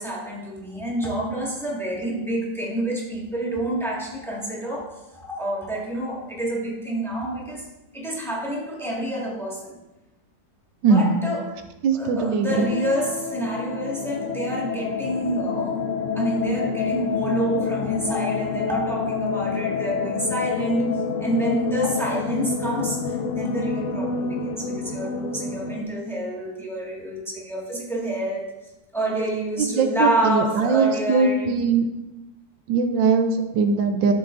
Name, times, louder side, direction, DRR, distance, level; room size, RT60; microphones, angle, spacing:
voice 1, 0.0-9.8 10.9-11.6 11.9-15.8 16.1-28.5 28.9-31.5, right 1 dB, ahead, -4 dB, 1.7 m, -28 dB
voice 2, 10.8-11.2 11.8-12.7 29.7-31.8 32.7-34.1, right 4 dB, 85° right, 7 dB, 1.4 m, -20 dB
sound 1, 12.5-25.8, left 5 dB, 65° left, 0.7 m, -28 dB
12.0 x 7.8 x 2.6 m, 1.0 s
omnidirectional pair, 2.0 m